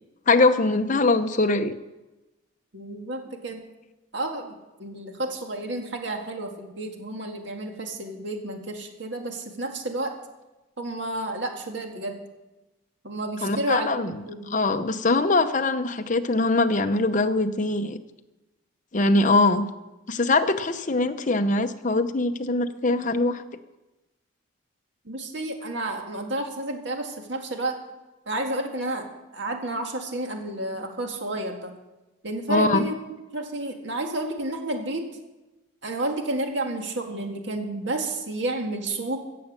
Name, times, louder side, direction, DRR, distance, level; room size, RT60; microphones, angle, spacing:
voice 1, 0.3-1.7 13.4-18.0 18.9-19.7 20.1-23.4 32.5-32.8, left 2 dB, 40° left, 9 dB, 0.8 m, -22 dB
voice 2, 2.7-3.6 4.1-10.2 10.8-12.2 13.0-13.9 14.3-14.5 25.1-27.8 28.3-29.1 29.3-31.7 32.2-33.0 33.3-35.1 35.8-39.2, right 1 dB, 60° right, 3 dB, 2.0 m, -31 dB
16.5 x 7.6 x 7.4 m, 1.1 s
head